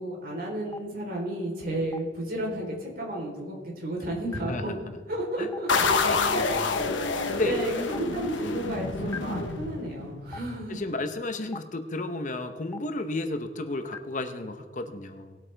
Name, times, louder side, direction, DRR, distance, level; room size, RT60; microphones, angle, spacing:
voice 1, 0.0-4.8 5.1-10.9, right 1 dB, 50° right, -1 dB, 3.6 m, -33 dB
Stream, 0.7-0.8 1.9-2.0 3.1-3.2 4.3-4.4 5.5-5.6 6.7-6.8 7.9-8.0 9.1-9.2 10.3-10.4 11.5-11.6 12.7-12.8 13.9-14.0, left 4 dB, 15° left, 0.4 m, -37 dB
sound 1, 5.7-10.2, left 4 dB, 80° left, 1.1 m, -28 dB
voice 2, 6.0-6.9 7.3-7.6 8.4-8.6 10.7-15.4, left 2 dB, 40° left, 8 dB, 0.8 m, -33 dB
20.0 x 8.4 x 3.4 m, 1.5 s
head